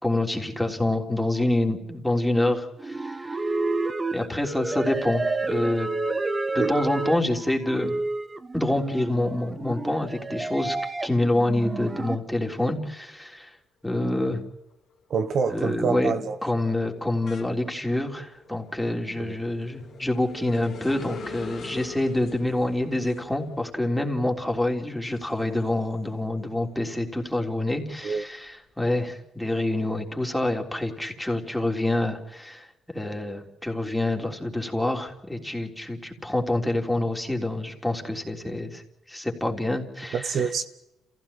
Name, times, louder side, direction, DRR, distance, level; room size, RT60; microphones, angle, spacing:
voice 1, 0.0-3.6 4.1-5.9 6.5-7.9 8.5-10.8 11.0-13.6 13.8-14.4 15.5-16.1 16.4-38.8 39.1-40.4, left 1 dB, 5° left, 3.5 m, -27 dB
sound 1, 2.8-12.2, right 3 dB, 25° right, 1.4 m, -30 dB
sound 2, 14.5-14.8 15.1-26.4 26.8-28.5, left 4 dB, 60° left, 2.5 m, -44 dB
voice 2, 15.1-16.4 19.2-19.4 28.0-28.2 40.1-40.6, right 6 dB, 60° right, 1.2 m, -26 dB
28.0 x 16.0 x 8.8 m
cardioid pair, 90°, 0 cm